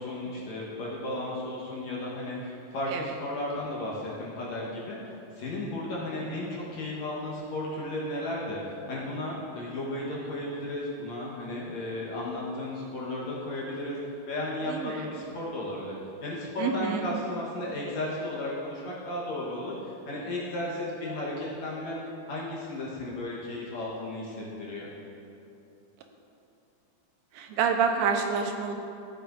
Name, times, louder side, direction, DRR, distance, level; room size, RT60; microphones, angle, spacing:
voice 1, 0.0-14.0 14.3-22.0 22.3-24.9, left 1 dB, 60° left, -5 dB, 2.1 m, -34 dB
voice 2, 14.7-15.1 16.6-17.1 27.3-28.7, right 6 dB, 85° right, 4 dB, 2.4 m, -28 dB
14.0 x 7.6 x 2.5 m, 2.7 s
omnidirectional pair, 4.1 m